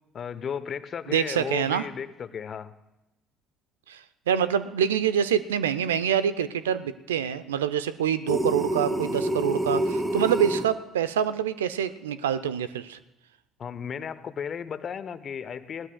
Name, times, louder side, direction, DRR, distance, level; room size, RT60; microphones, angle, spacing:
voice 1, 0.1-2.7 13.6-15.9, left 7 dB, 45° left, 13 dB, 0.9 m, -34 dB
voice 2, 1.1-1.8 3.9-4.0 4.3-13.0, right 8 dB, 85° right, 14 dB, 0.5 m, -26 dB
sound 1, 8.3-10.7, right 1 dB, 25° right, 2.5 m, -27 dB
20.5 x 17.5 x 2.3 m, 0.94 s
hypercardioid pair, 55°, 0 cm